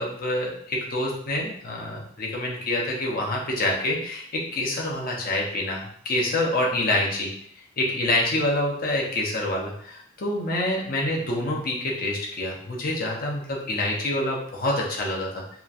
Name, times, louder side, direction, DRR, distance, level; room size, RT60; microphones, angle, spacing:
voice 1, 0.0-7.3 7.8-15.4, left 1 dB, 50° left, -2 dB, 0.6 m, -27 dB
2.9 x 2.3 x 2.5 m, 0.63 s
head